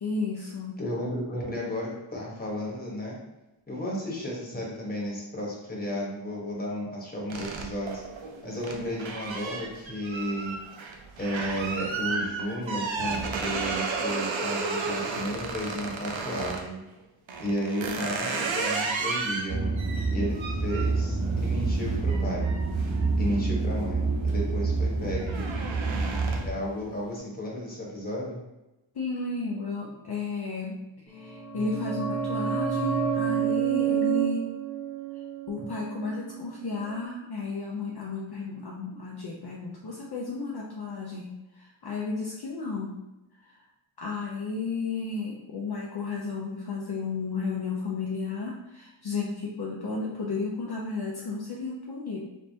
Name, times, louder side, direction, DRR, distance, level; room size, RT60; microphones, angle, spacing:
voice 1, 0.0-0.8 17.8-18.2 28.9-34.5 35.5-42.9 43.4-43.6 44.0-52.2, left 4 dB, 50° left, -4 dB, 0.7 m, -33 dB
voice 2, 0.8-3.2 3.7-8.0 8.4-10.6 11.2-16.8 17.4-19.7 20.1-22.5 23.2-25.4 26.2-28.4, equal, 20° left, -4 dB, 1.3 m, -33 dB
sound 1, 7.3-16.7 17.3-23.7 24.1-24.5 24.8-26.7, right 4 dB, 70° right, 0.7 m, -33 dB
sound 2, 19.5-26.5, right 3 dB, 35° right, 0.7 m, -27 dB
sound 3, 31.2-36.6 36.8-36.9, right 8 dB, 10° right, 1.2 m, -29 dB
4.0 x 3.4 x 2.8 m, 0.97 s
wide cardioid pair, 85°, 48 cm